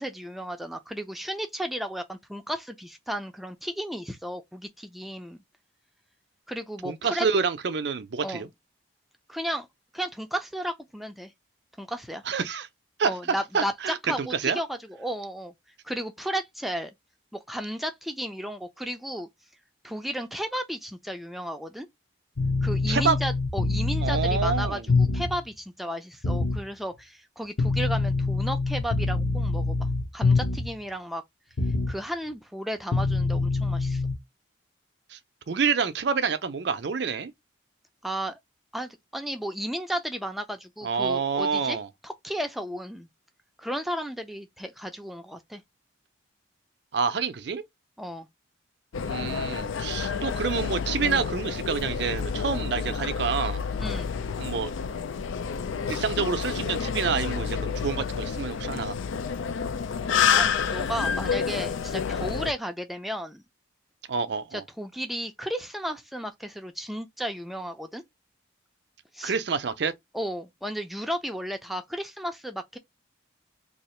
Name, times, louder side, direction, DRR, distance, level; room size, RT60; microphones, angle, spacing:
voice 1, 0.0-5.4 6.5-7.3 8.2-8.4 9.3-9.7 9.9-11.3 11.8-12.2 13.0-15.5 15.8-16.9 17.3-19.3 19.8-21.9 22.6-31.2 31.9-34.0 38.0-38.4 38.7-41.8 42.0-43.1 43.6-45.6 48.0-48.3 53.8-54.2 60.4-63.4 64.8-68.0 69.1-69.4 70.1-72.8, equal, ahead, 0.4 m, -34 dB
voice 2, 6.8-8.5 12.3-12.7 13.0-13.1 13.5-14.6 22.9-23.2 24.0-24.9 35.1-35.2 35.5-37.3 40.8-41.9 46.9-47.6 49.0-53.6 54.4-54.7 55.9-59.0 64.1-64.6 69.2-69.9, right 5 dB, 60° right, 0.5 m, -28 dB
sound 1, 22.4-25.4 26.2-26.6 27.6-30.8 31.6-32.0 32.9-34.1, left 3 dB, 55° left, 0.8 m, -25 dB
sound 2, 48.9-62.5, left 6 dB, 80° left, 0.4 m, -29 dB
2.8 x 2.4 x 4.2 m
head